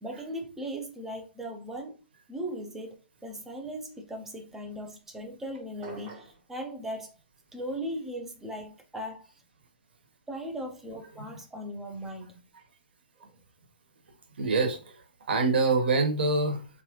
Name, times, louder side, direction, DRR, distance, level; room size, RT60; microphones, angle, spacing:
voice 1, 0.0-2.0 2.3-7.1 7.5-9.4 10.3-12.4, equal, 5° right, 0.5 m, -38 dB
sound 1, 5.8-6.4, right 2 dB, 25° right, 0.9 m, -45 dB
voice 2, 14.4-15.0 15.3-16.7, right 3 dB, 65° right, 1.2 m, -25 dB
3.7 x 2.9 x 3.1 m
hypercardioid pair, 165°, 6 cm